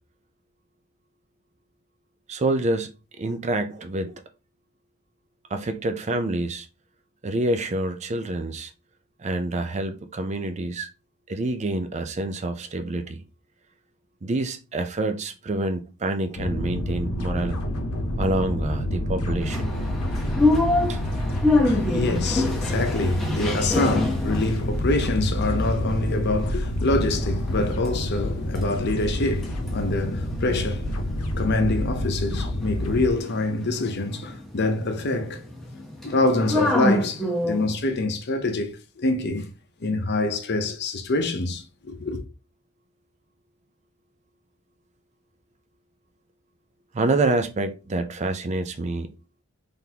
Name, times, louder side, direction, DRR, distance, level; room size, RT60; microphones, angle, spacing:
voice 1, 2.3-2.9 3.2-4.2 5.5-6.7 7.2-8.7 9.2-10.9 11.3-13.2 14.2-17.6 18.2-19.7 20.9-21.0 46.9-49.1, right 2 dB, 30° right, 0.4 m, -27 dB
sound 1, 16.3-33.1, left 1 dB, 80° left, 0.8 m, -28 dB
sound 2, 19.4-26.6 27.0-27.9 28.2-37.8, left 2 dB, ahead, 0.9 m, -28 dB
voice 2, 21.6-31.0 31.4-35.4 36.0-39.5 39.8-42.2, left 2 dB, 50° left, 0.7 m, -26 dB
3.9 x 3.4 x 2.8 m
head